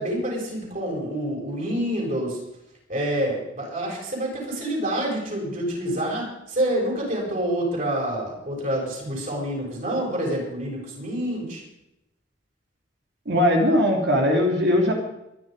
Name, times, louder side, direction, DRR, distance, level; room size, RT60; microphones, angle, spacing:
voice 1, 0.0-2.4 2.9-11.6, right 1 dB, 45° right, -2 dB, 7.3 m, -27 dB
voice 2, 13.3-14.9, left 1 dB, 65° right, 1 dB, 2.9 m, -20 dB
24.0 x 10.5 x 5.3 m, 0.87 s
head